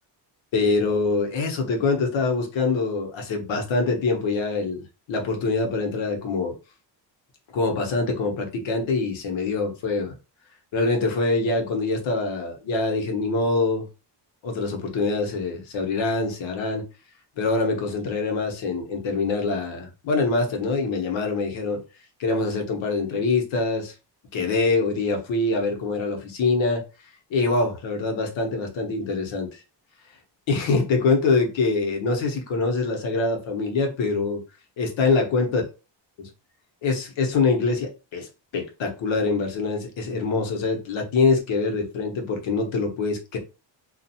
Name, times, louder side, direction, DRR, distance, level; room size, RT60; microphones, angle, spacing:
voice 1, 0.5-6.5 7.5-10.1 10.7-13.9 14.4-16.9 17.4-21.8 22.2-23.9 24.3-26.8 27.3-29.6 30.5-34.4 34.8-35.6 36.2-36.3 36.8-43.4, left 3 dB, 75° left, 1.0 m, -24 dB
2.4 x 2.3 x 2.7 m
cardioid pair, 120°, 47 cm